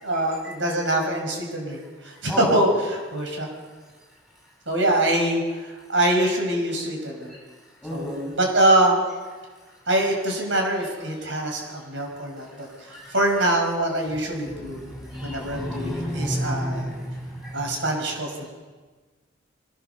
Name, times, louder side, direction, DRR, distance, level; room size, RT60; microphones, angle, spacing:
voice 1, 0.0-3.5 4.7-7.4 7.9-9.0 9.9-12.7 13.1-14.9 15.2-16.9 17.5-18.5, right 1 dB, 75° right, 2 dB, 5.7 m, -24 dB
voice 2, 7.8-8.3 12.9-13.1 14.5-17.6, equal, 5° right, -3 dB, 7.7 m, -31 dB
24.0 x 17.5 x 6.9 m, 1.4 s
head